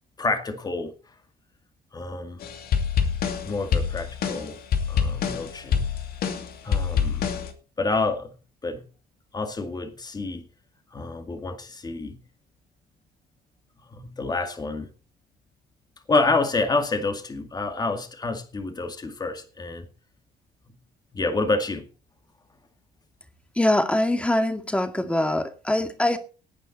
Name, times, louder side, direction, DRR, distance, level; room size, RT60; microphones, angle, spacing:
voice 1, 0.2-0.9 1.9-2.4 3.4-4.6 4.9-5.9 6.6-7.3 7.8-8.3 8.6-8.8 9.3-10.5 10.9-12.2 13.9-14.9 16.1-19.9 21.1-21.9, left 3 dB, 25° left, 2.2 m, -28 dB
sound 1, 2.4-7.5, left 7 dB, 60° left, 2.7 m, -26 dB
voice 2, 23.5-26.2, left 1 dB, 5° left, 2.1 m, -23 dB
17.5 x 9.3 x 4.2 m
cardioid pair, 110°, 17 cm